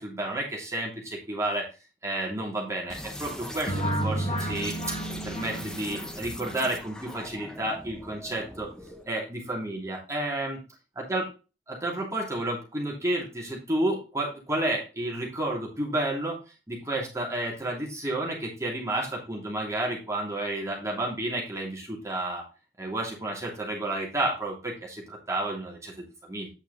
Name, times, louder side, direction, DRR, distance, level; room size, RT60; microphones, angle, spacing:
voice 1, 0.0-1.7 2.0-5.0 5.2-8.7 9.1-10.6 11.1-11.2 11.7-16.4 16.7-22.4 22.8-26.5, right 1 dB, 15° right, -2 dB, 2.9 m, -31 dB
sound 1, 2.9-9.1, equal, 5° left, 0.9 m, -40 dB
sound 2, 3.7-6.5, right 1 dB, 30° left, 2.6 m, -31 dB
9.2 x 5.5 x 4.2 m, 0.31 s
head